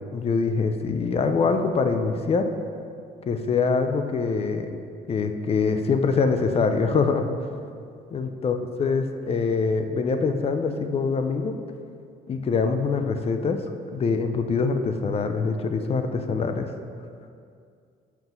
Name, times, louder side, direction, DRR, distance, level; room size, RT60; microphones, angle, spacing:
voice 1, 0.1-2.5 3.3-4.7 5.1-7.3 8.1-11.5 12.3-13.6 13.9-16.7, left 4 dB, 35° left, 7 dB, 0.6 m, -24 dB
5.8 x 5.5 x 5.9 m, 2.3 s
cardioid pair, 110°, 17 cm